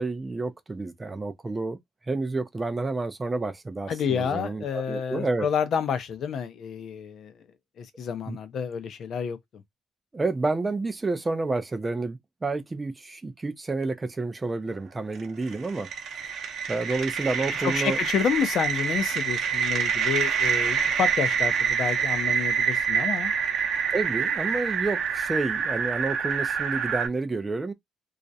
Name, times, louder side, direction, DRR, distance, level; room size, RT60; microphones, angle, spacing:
voice 1, 0.0-1.8 2.1-5.5 8.3-8.4 10.1-15.9 16.7-18.0 23.9-27.7, right 3 dB, 15° right, 0.3 m, -29 dB
voice 2, 3.9-7.3 7.8-9.4 17.5-23.3, left 7 dB, 45° left, 0.5 m, -29 dB
sound 1, 15.1-27.1, right 7 dB, 50° right, 0.6 m, -26 dB
2.3 x 2.0 x 2.6 m
cardioid pair, 160°, 0 cm